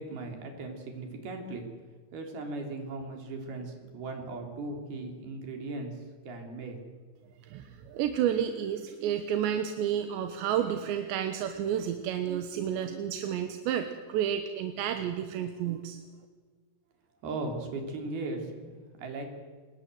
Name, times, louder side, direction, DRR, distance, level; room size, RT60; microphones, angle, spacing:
voice 1, 0.0-1.7 2.1-6.0 6.2-6.8 17.2-19.3, right 2 dB, 60° right, 3 dB, 5.6 m, -38 dB
voice 2, 7.4-16.0, right 9 dB, 85° right, 7 dB, 3.5 m, -31 dB
27.0 x 21.0 x 7.9 m, 1.5 s
omnidirectional pair, 5.0 m